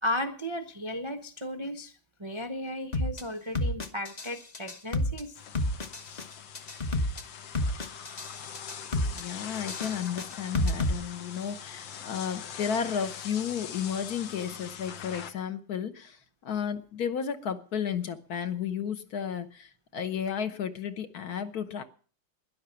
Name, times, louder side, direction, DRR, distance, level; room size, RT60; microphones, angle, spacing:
voice 1, 0.0-1.9 2.2-5.4 6.0-6.3, left 1 dB, 45° right, 0.3 m, -35 dB
sound 1, 2.9-3.2 3.5-4.3 4.5-5.2 5.5-6.2 6.5-7.2 7.5-8.3 8.5-9.2 9.5-10.9, left 1 dB, 30° left, 0.8 m, -28 dB
sound 2, 5.3-15.3, left 8 dB, 75° left, 1.8 m, -42 dB
voice 2, 9.1-21.8, left 8 dB, 60° left, 1.3 m, -33 dB
12.5 x 10.5 x 7.0 m
omnidirectional pair, 2.1 m